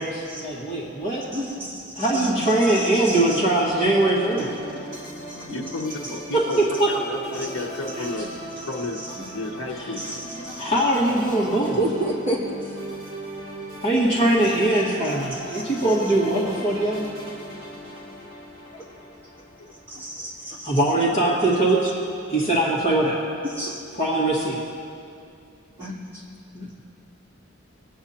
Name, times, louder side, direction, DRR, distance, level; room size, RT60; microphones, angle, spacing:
voice 1, 0.0-1.2 2.0-4.5 6.3-6.4 6.8-6.9 9.8-9.9 10.6-11.7 13.8-17.1 20.6-21.9 22.3-23.2 24.0-24.5 26.5-26.7, right 1 dB, 30° left, -6 dB, 1.8 m, -21 dB
voice 2, 1.3-3.4 4.4-5.2 5.5-5.8 7.3-7.5 8.0-8.1 8.9-9.3 10.0-10.8 11.6-12.8 14.4-14.6 15.0-15.8 18.7-18.9 19.9-20.8 23.4-23.8 25.8-26.2, right 1 dB, 10° right, -10 dB, 2.6 m, -32 dB
sound 1, 3.1-20.5, equal, 30° right, 2.8 m, -38 dB
voice 3, 5.5-8.3 8.7-9.0 9.3-10.2 19.6-19.7 21.2-21.6 24.2-24.6, left 2 dB, 80° left, -3 dB, 0.9 m, -32 dB
23.5 x 8.6 x 2.9 m, 2.5 s
head